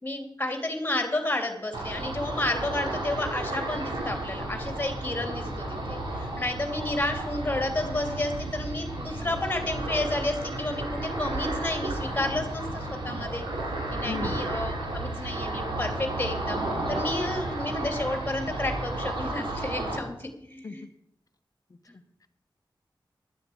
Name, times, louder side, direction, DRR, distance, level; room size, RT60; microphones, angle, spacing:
voice 1, 0.0-13.4 13.9-16.6 16.9-20.8, left 2 dB, 20° left, 5 dB, 2.8 m, -31 dB
Ocean, 1.7-20.0, right 2 dB, 75° right, 3.1 m, -32 dB
voice 2, 14.0-14.4 20.6-20.9 21.7-22.3, left 4 dB, 50° left, 10 dB, 1.1 m, -38 dB
11.5 x 7.8 x 8.6 m, 0.75 s
wide cardioid pair, 125°, 8 cm